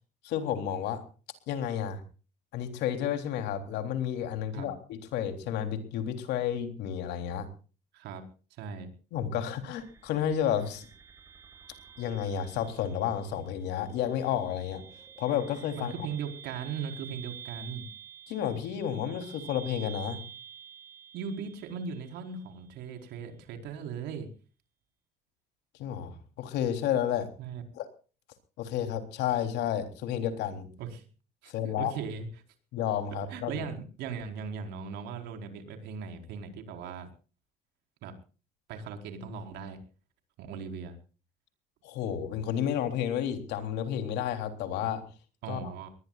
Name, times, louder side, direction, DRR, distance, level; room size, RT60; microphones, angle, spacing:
voice 1, 0.2-1.0 1.5-2.0 2.5-7.5 9.1-10.9 12.0-14.8 15.2-15.9 18.3-20.2 25.8-27.3 27.7-27.9 28.6-30.7 31.5-31.9 32.7-33.7 41.8-45.0 45.5-45.7, left 9 dB, 85° left, 7 dB, 3.5 m, -31 dB
voice 2, 7.9-8.2 8.6-8.9 15.7-17.8 21.1-24.3 27.4-27.6 30.8-31.0 31.4-32.3 33.3-37.1 38.0-38.1 38.7-39.8 40.4-40.9 45.4-45.9, right 6 dB, 85° right, 5 dB, 4.6 m, -38 dB
sound 1, 9.7-22.7, right 9 dB, 15° right, 7.8 m, -49 dB
23.0 x 20.0 x 2.5 m, 0.37 s
cardioid pair, 110°, 17 cm